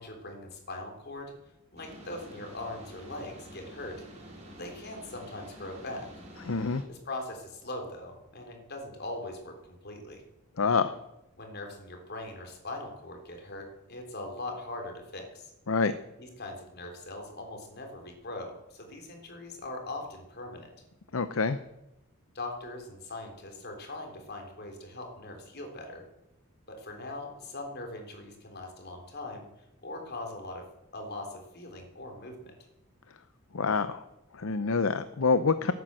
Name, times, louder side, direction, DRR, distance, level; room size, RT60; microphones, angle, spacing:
voice 1, 0.0-1.3 1.7-4.0 4.5-6.1 6.9-10.2 11.4-15.5 16.2-20.7 22.3-26.0 26.7-29.5 29.8-30.7 30.9-32.5, left 2 dB, 45° left, 3 dB, 3.7 m, -41 dB
sound 1, 1.8-6.8, equal, 30° right, 4.8 m, -48 dB
voice 2, 6.5-6.8 10.6-10.9 15.7-15.9 21.1-21.6 33.5-34.0 34.3-35.7, left 4 dB, 65° left, 12 dB, 0.7 m, -26 dB
18.0 x 9.4 x 7.7 m, 0.90 s
head